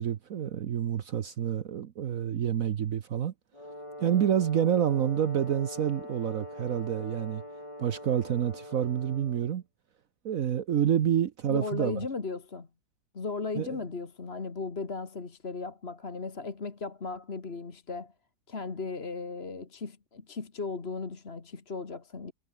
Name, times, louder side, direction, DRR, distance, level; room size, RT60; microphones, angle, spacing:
voice 1, 0.0-3.3 4.0-7.4 7.8-9.6 10.2-12.0 13.6-13.8, right 9 dB, 60° right, 1.2 m, -28 dB
Brass instrument, 3.5-9.5, left 1 dB, 20° left, 6.6 m, -43 dB
voice 2, 11.5-12.7 13.1-18.1 18.5-22.3, left 4 dB, 40° left, 2.1 m, -36 dB
omnidirectional pair, 1.7 m